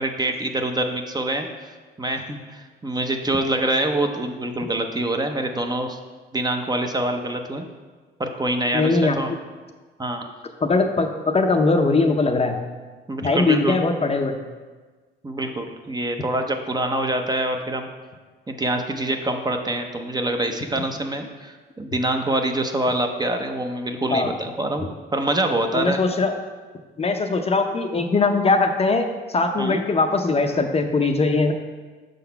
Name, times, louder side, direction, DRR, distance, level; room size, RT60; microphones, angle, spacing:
voice 1, 0.0-1.5 2.0-6.0 6.3-7.6 8.2-9.3 10.0-10.3 13.1-13.8 15.2-17.9 18.5-24.8 25.1-26.0 29.6-29.8, right 1 dB, 20° right, 4 dB, 0.6 m, -25 dB
voice 2, 8.7-9.2 10.6-12.6 13.2-14.4 24.1-24.3 25.7-26.3 27.0-29.1 29.3-31.5, left 3 dB, 30° left, 5 dB, 0.6 m, -20 dB
6.2 x 3.9 x 5.7 m, 1.4 s
cardioid pair, 90°, 20 cm